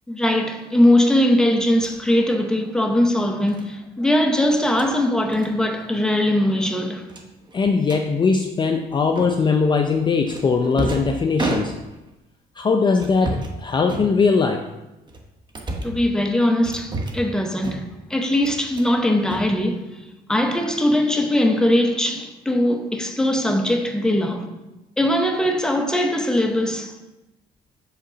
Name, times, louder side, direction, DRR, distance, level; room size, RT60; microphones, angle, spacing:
voice 1, 0.1-7.1 15.8-17.8 18.1-20.0 20.3-24.5 25.0-26.9, left 1 dB, 5° left, 0.8 m, -20 dB
sound 1, 1.7-2.0 3.5-3.7 4.6-4.9 5.3-5.5 5.8-6.0 6.3-6.4 7.1-8.0 9.2-9.6 10.3-12.1 12.9-13.6 13.9-14.6 15.1-16.0 16.6-17.3 17.6-18.1 18.4-18.9 19.2-20.1, right 2 dB, 25° right, 1.1 m, -31 dB
voice 2, 7.5-11.7 12.6-14.7, left 4 dB, 25° left, 0.5 m, -20 dB
8.1 x 3.7 x 5.1 m
cardioid pair, 110°, 17 cm